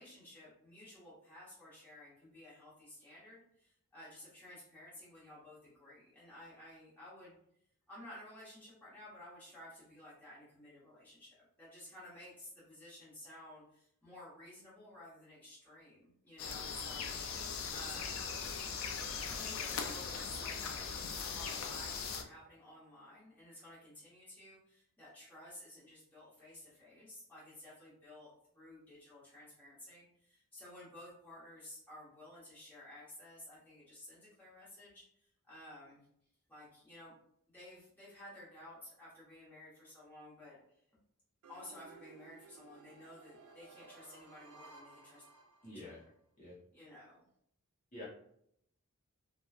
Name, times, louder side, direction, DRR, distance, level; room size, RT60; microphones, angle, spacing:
voice 1, 0.0-7.4 7.9-17.3 17.7-18.2 19.1-36.0 36.5-37.1 37.5-40.6 41.5-45.2 45.6-45.9 46.7-47.2, left 1 dB, 10° left, -10 dB, 0.9 m, -54 dB
sound 1, 16.4-22.2, left 6 dB, 70° left, 0.4 m, -40 dB
sound 2, 41.4-46.1, right 4 dB, 85° right, 0.4 m, -58 dB
voice 2, 45.6-46.0 46.4-46.6 47.9-48.1, left 1 dB, 35° left, -7 dB, 0.8 m, -47 dB
3.0 x 2.1 x 2.3 m, 0.71 s
head